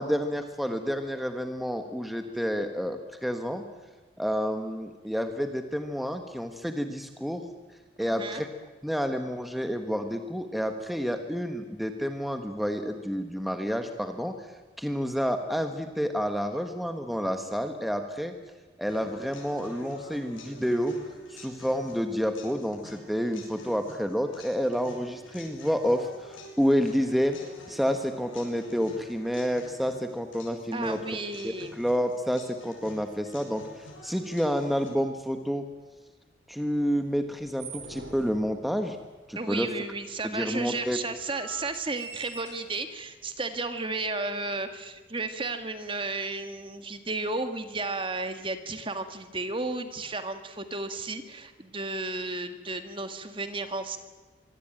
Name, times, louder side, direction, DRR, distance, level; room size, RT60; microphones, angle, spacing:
voice 1, 0.0-3.6 4.2-7.5 8.0-8.5 8.8-14.5 14.8-18.3 18.8-21.0 21.3-27.4 27.7-31.0 31.4-35.6 36.5-39.0 39.3-39.7 40.2-41.0, equal, ahead, 6 dB, 1.4 m, -29 dB
voice 2, 8.0-8.4 30.7-31.7 39.3-54.0, right 3 dB, 25° right, 8 dB, 1.9 m, -33 dB
sound 1, 18.9-34.9, left 1 dB, 80° left, 7.9 m, -48 dB
sound 2, 37.0-39.1 39.9-40.0 40.2-40.3 41.0-43.1, right 4 dB, 60° right, 5.7 m, -44 dB
25.0 x 24.0 x 9.0 m, 1.3 s
head